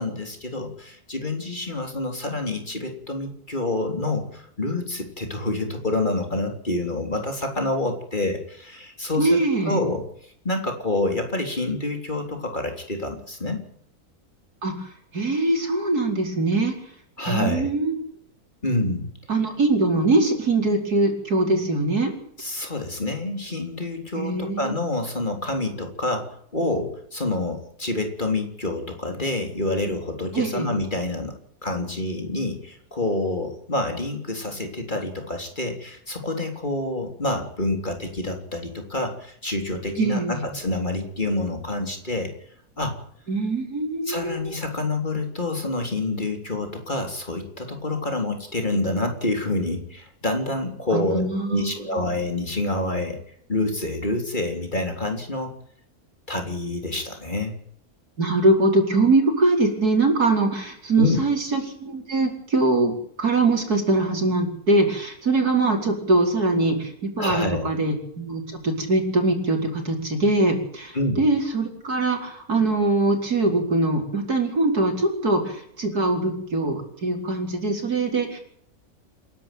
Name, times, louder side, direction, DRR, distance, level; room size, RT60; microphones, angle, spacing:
voice 1, 0.0-9.4 9.7-10.0 10.4-13.6 17.2-17.7 18.6-19.1 22.4-31.4 31.6-42.3 42.8-43.0 44.1-53.2 53.5-55.5 56.3-57.5 61.0-61.2 67.2-67.6 70.9-71.2, left 2 dB, 30° left, 4 dB, 3.7 m, -27 dB
voice 2, 9.2-9.8 14.6-14.9 15.1-16.7 17.3-17.9 19.3-22.1 24.1-24.7 30.3-30.7 40.0-40.5 43.3-44.6 50.9-52.0 58.2-78.4, right 2 dB, 85° right, 3 dB, 5.2 m, -22 dB
28.5 x 11.5 x 9.3 m, 0.66 s
omnidirectional pair, 1.6 m